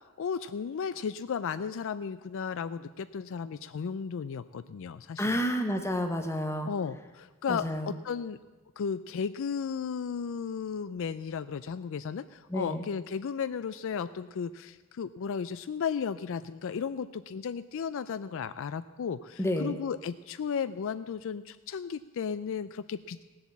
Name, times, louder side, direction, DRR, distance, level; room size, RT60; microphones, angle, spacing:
voice 1, 0.2-5.4 6.7-8.4 8.8-23.2, left 6 dB, 65° left, 13 dB, 0.4 m, -34 dB
voice 2, 5.2-6.7 7.5-8.0 12.5-12.8 19.4-19.7, equal, 15° left, 4 dB, 0.9 m, -30 dB
17.0 x 7.8 x 7.2 m, 1.3 s
head